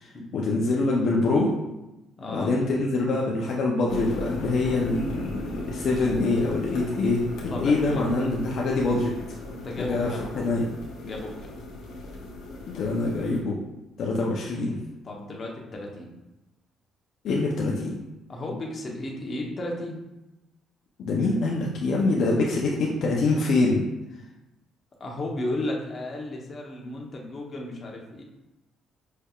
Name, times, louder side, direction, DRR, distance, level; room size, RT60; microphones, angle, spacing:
voice 1, 0.0-1.5 2.3-9.1 9.8-10.1 10.4-10.7 12.7-13.6 14.0-14.8 17.2-17.9 21.0-23.8, left 3 dB, 65° left, -2 dB, 0.6 m, -25 dB
voice 2, 2.2-2.5 7.5-8.3 9.5-10.5 11.0-11.5 15.0-16.1 18.3-20.0 25.0-28.2, left 1 dB, 40° left, -1 dB, 0.9 m, -34 dB
sound 1, 3.9-13.4, left 2 dB, 90° left, 1.0 m, -37 dB
5.4 x 3.3 x 2.4 m, 0.97 s
cardioid pair, 110°, 0 cm